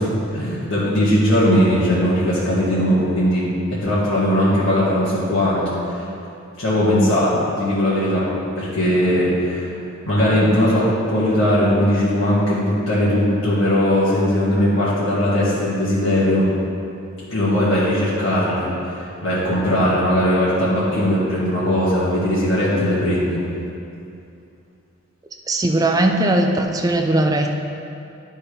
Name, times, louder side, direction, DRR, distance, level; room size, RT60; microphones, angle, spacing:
voice 1, 0.0-6.0 6.6-8.3 8.5-9.7 10.1-16.5 17.3-23.4, equal, 60° left, -10 dB, 1.9 m, -19 dB
voice 2, 25.5-27.5, right 1 dB, 15° right, 3 dB, 0.4 m, -18 dB
10.5 x 4.4 x 5.2 m, 2.6 s
head